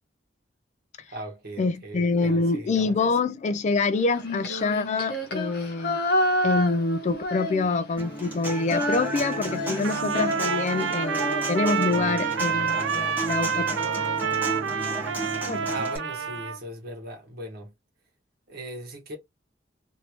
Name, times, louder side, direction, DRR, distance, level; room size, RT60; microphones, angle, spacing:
voice 1, 1.1-3.2 15.7-17.7 18.5-19.2, right 1 dB, 55° right, 1.4 m, -39 dB
voice 2, 1.6-6.0 6.4-13.8 14.2-14.7 15.5-15.7, left 3 dB, 40° left, 0.3 m, -26 dB
Female singing, 4.1-8.0 8.3-12.6, equal, 55° left, 0.8 m, -30 dB
Human voice / Acoustic guitar, 8.0-16.0, right 2 dB, 10° right, 1.5 m, -33 dB
Trumpet, 9.8-16.6, right 7 dB, 90° right, 0.6 m, -28 dB
3.2 x 2.6 x 2.9 m
head